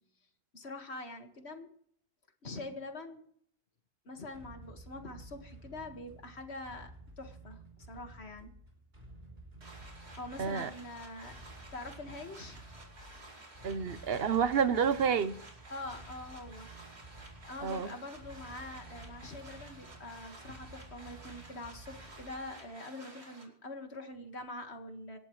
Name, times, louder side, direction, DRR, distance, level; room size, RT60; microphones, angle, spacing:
voice 1, 0.5-1.7 2.4-3.2 4.1-6.9 7.2-8.5 10.2-11.3 11.7-12.6 15.7-16.7 17.5-25.2, left 2 dB, 90° left, 5 dB, 2.1 m, -44 dB
sound 1, 4.3-22.7, right 2 dB, 45° right, 3.9 m, -53 dB
sound 2, 9.6-23.5, right 2 dB, 90° right, 3.1 m, -53 dB
voice 2, 10.4-10.7 13.6-15.4 17.6-17.9, right 7 dB, 65° right, 13 dB, 1.1 m, -29 dB
26.5 x 11.5 x 3.2 m, 0.64 s
omnidirectional pair, 1.1 m